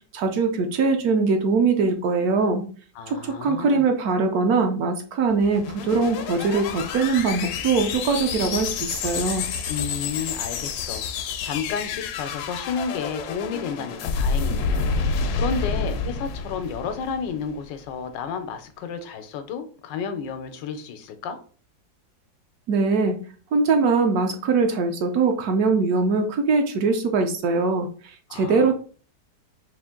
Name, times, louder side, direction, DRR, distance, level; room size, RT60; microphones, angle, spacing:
voice 1, 0.1-2.7 3.1-9.5 22.7-23.2 23.5-27.9 28.3-28.7, right 4 dB, 70° right, 1.0 m, -22 dB
voice 2, 3.0-3.9 9.7-21.4 28.3-28.7, left 6 dB, 90° left, 1.3 m, -32 dB
sound 1, 5.3-17.7, left 5 dB, 70° left, 1.0 m, -29 dB
4.1 x 2.5 x 3.6 m
omnidirectional pair, 1.9 m